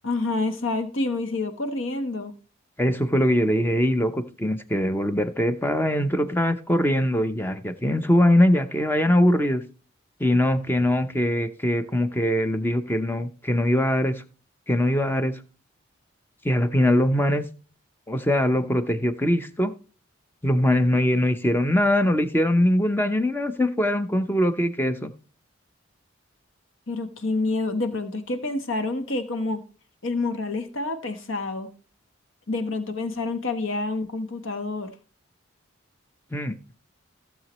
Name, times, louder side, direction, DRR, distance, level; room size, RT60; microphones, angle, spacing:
voice 1, 0.0-2.3 26.9-29.6 30.0-31.7 32.5-34.9, left 2 dB, 70° left, 1.1 m, -28 dB
voice 2, 2.8-9.6 10.2-14.2 14.7-15.4 16.4-17.5 18.1-19.7 20.4-25.1 36.3-36.6, left 1 dB, 10° left, 0.6 m, -22 dB
16.0 x 7.4 x 3.0 m
head